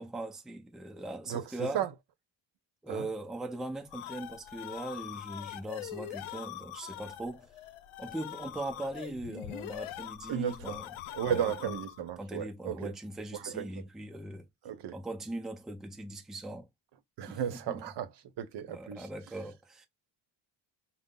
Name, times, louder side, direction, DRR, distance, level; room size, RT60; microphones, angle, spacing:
voice 1, 0.0-1.9 2.8-7.5 8.0-10.9 11.2-11.8 12.2-14.5 14.9-16.7 17.3-17.9 18.7-19.9, right 2 dB, ahead, 0.5 m, -40 dB
voice 2, 1.3-1.9 2.9-3.1 10.3-10.8 11.1-12.9 13.4-13.8 14.6-14.9 17.2-18.1 18.4-19.1, right 9 dB, 60° right, 0.8 m, -34 dB
sound 1, 3.6-12.1, left 12 dB, 80° left, 0.7 m, -43 dB
5.2 x 2.1 x 3.8 m
cardioid pair, 160°, 48 cm